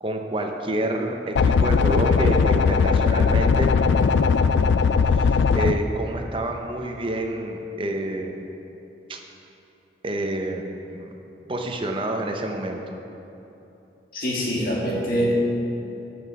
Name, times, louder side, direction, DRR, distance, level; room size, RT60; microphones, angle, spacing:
voice 1, 0.0-3.7 5.1-8.4 9.1-9.2 10.0-11.1 11.5-12.8, right 1 dB, 30° right, 3 dB, 0.7 m, -28 dB
sound 1, 1.4-5.7, left 5 dB, 80° left, 0.3 m, -19 dB
voice 2, 14.1-15.3, equal, 50° left, -3 dB, 1.8 m, -24 dB
11.5 x 6.1 x 4.8 m, 2.9 s
head